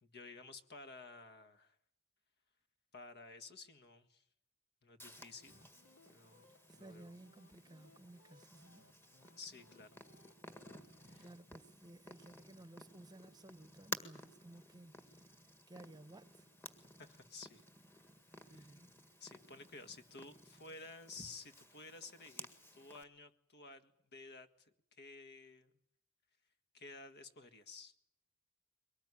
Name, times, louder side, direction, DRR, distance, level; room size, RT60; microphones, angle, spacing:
voice 1, 0.0-1.8 2.9-4.2 4.8-5.6 6.1-6.5 6.7-7.1 9.4-10.0 11.1-11.3 17.0-17.6 18.5-18.7 19.2-22.5 22.7-25.7 26.7-27.9, left 3 dB, 50° left, 1.8 m, -53 dB
Purr, 5.0-23.0, left 1 dB, 10° left, 1.8 m, -54 dB
sound 1, 5.1-11.3, left 2 dB, 70° left, 1.9 m, -68 dB
voice 2, 6.7-8.8 11.2-15.2 15.7-16.5 18.4-18.9, right 2 dB, 20° right, 1.1 m, -57 dB
23.0 x 19.0 x 9.8 m
head